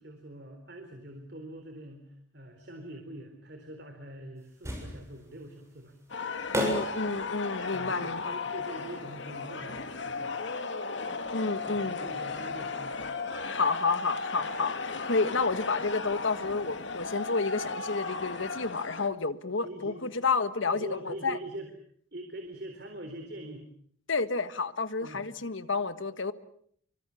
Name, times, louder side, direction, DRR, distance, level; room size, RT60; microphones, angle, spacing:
voice 1, 0.0-5.9 7.7-10.4 11.6-13.0 19.6-20.2 20.7-21.7 22.1-23.7 25.0-25.2, right 1 dB, 55° right, 6 dB, 3.8 m, -43 dB
sound 1, 4.4-18.1, equal, 15° right, 7.3 m, -42 dB
sound 2, 6.1-19.1, left 4 dB, 70° left, 2.2 m, -36 dB
voice 2, 6.5-8.3 11.3-12.0 13.5-21.4 24.1-26.3, left 4 dB, 85° left, 11 dB, 1.7 m, -30 dB
27.5 x 24.5 x 7.1 m, 0.63 s
head